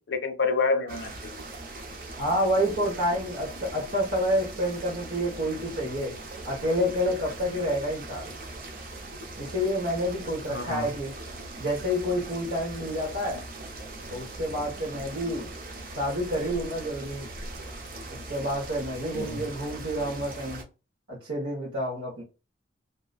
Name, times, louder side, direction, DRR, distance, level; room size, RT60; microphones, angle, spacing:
voice 1, 0.0-1.4 10.5-10.9 19.1-19.5, left 4 dB, 65° left, 0.5 m, -28 dB
sound 1, 0.9-20.6, right 2 dB, 50° right, 0.6 m, -40 dB
voice 2, 2.2-6.1 6.4-8.3 9.4-11.1 11.6-13.4 14.1-15.5 16.0-17.3 18.3-20.6 21.1-22.2, equal, 85° right, 1.1 m, -28 dB
2.8 x 2.4 x 2.3 m
head